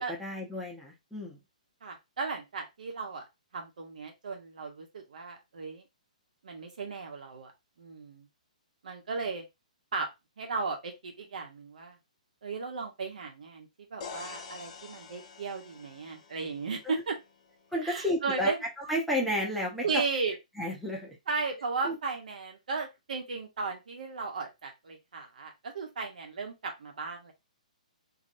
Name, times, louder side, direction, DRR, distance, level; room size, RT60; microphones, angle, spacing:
voice 1, 0.0-1.4 16.8-17.0 17.7-18.5 18.8-19.8 20.6-21.2 21.8-22.0, left 1 dB, ahead, -3 dB, 0.9 m, -32 dB
voice 2, 1.8-3.2 3.5-5.8 6.4-7.5 7.8-8.3 8.8-9.4 9.9-10.1 10.4-12.0 12.4-17.2 17.8-18.6 19.8-20.4 21.3-27.3, right 4 dB, 75° right, 3 dB, 1.1 m, -35 dB
sound 1, 14.0-17.8, left 5 dB, 50° left, 0.8 m, -47 dB
3.0 x 2.9 x 2.6 m, 0.22 s
hypercardioid pair, 145°, 4 cm